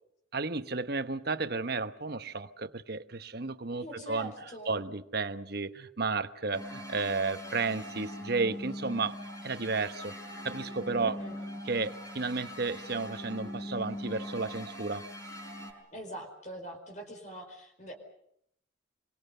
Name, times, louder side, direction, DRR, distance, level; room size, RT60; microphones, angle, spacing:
voice 1, 0.3-4.3 4.7-9.2 9.4-10.2 10.4-11.2 11.6-15.0, right 3 dB, 50° right, 1.1 m, -33 dB
voice 2, 3.8-4.8 11.0-11.3 15.9-17.9, right 1 dB, 40° left, 4.7 m, -43 dB
sound 1, 6.5-15.7, equal, 20° left, 5.6 m, -41 dB
26.5 x 23.5 x 6.8 m
head